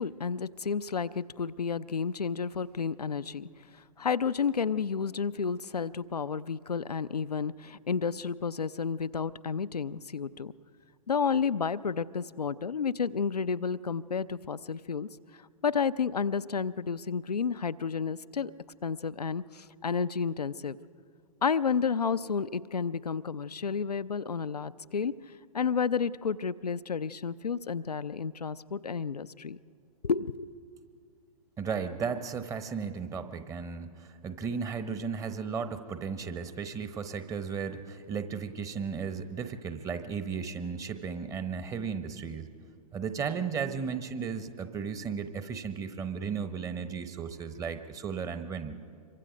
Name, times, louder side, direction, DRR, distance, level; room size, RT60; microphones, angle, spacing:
voice 1, 0.0-3.5 4.0-10.5 11.1-15.1 15.6-18.5 18.8-20.8 21.4-25.1 25.5-29.6 30.0-30.6, left 6 dB, 80° left, 14 dB, 0.6 m, -31 dB
voice 2, 31.6-42.5 42.9-48.8, right 6 dB, 15° right, 10 dB, 1.0 m, -35 dB
26.0 x 23.5 x 5.1 m, 2.3 s
figure-of-eight pair, 110°, 20 cm